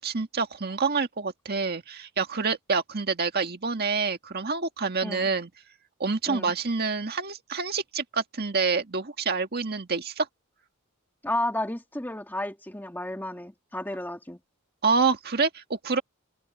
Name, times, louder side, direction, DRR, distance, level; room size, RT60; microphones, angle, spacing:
voice 1, 0.0-5.5 6.0-10.3 14.8-16.0, right 4 dB, 50° right, 1.8 m, -27 dB
voice 2, 11.2-14.4, left 1 dB, 10° left, 2.0 m, -32 dB
head